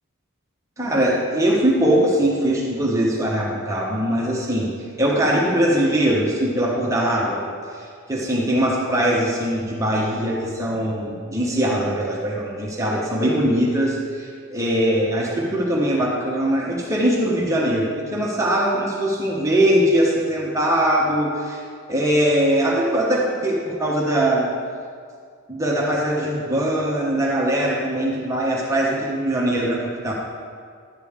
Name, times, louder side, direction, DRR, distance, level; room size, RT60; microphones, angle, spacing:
voice 1, 0.8-4.7 5.0-7.4 7.7-21.6 21.9-24.5 25.5-30.1, right 1 dB, 15° right, -4 dB, 1.1 m, -21 dB
12.0 x 9.2 x 3.6 m, 2.1 s
head